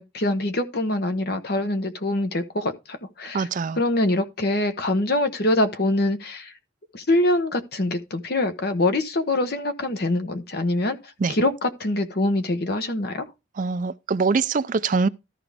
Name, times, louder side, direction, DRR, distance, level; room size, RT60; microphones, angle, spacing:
voice 1, 0.0-2.7 3.2-3.5 3.8-6.5 6.9-11.0 11.3-13.3, left 1 dB, 55° left, 1.0 m, -24 dB
voice 2, 3.3-3.8 11.2-11.3 13.6-15.1, right 4 dB, 40° right, 0.4 m, -23 dB
13.5 x 4.8 x 3.4 m
head